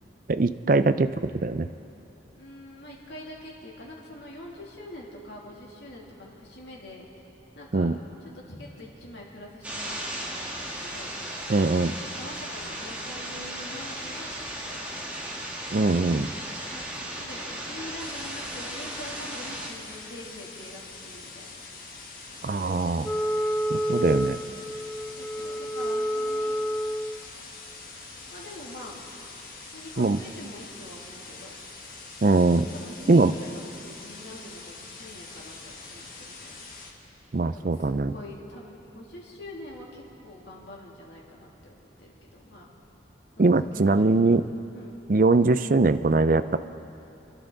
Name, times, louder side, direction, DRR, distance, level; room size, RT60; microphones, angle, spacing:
voice 1, 0.3-1.7 7.7-8.0 11.5-12.0 15.7-16.3 22.4-23.1 23.7-24.4 30.0-30.2 32.2-32.7 33.1-33.3 37.3-38.1 43.4-44.4 45.1-46.6, right 3 dB, 45° right, 12 dB, 0.4 m, -22 dB
voice 2, 2.3-7.1 7.5-7.9 8.2-11.1 12.0-15.1 16.7-21.5 22.2-22.8 25.2-26.5 28.3-29.0 29.7-31.5 32.7-36.7 37.5-42.7 43.4-44.1 44.7-44.9, left 1 dB, 70° left, -3 dB, 2.8 m, -45 dB
sound 1, 9.6-19.7, right 1 dB, 10° right, 1.9 m, -36 dB
sound 2, 18.0-36.9, left 3 dB, 50° left, 1.7 m, -44 dB
Wind instrument woodwind instrument, 23.0-27.2, equal, 10° left, 0.6 m, -29 dB
29.5 x 12.0 x 4.0 m, 2.9 s
head